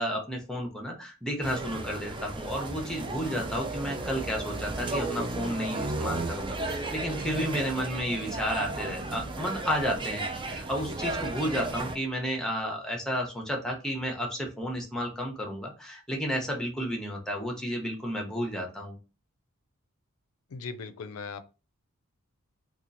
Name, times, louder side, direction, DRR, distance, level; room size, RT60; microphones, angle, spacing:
voice 1, 0.0-19.0, equal, 5° left, 0 dB, 0.8 m, -32 dB
sound 1, 1.4-12.0, right 2 dB, 20° right, 0.4 m, -34 dB
voice 2, 20.5-21.4, left 5 dB, 75° left, 10 dB, 0.5 m, -38 dB
2.9 x 2.4 x 3.9 m, 0.32 s
head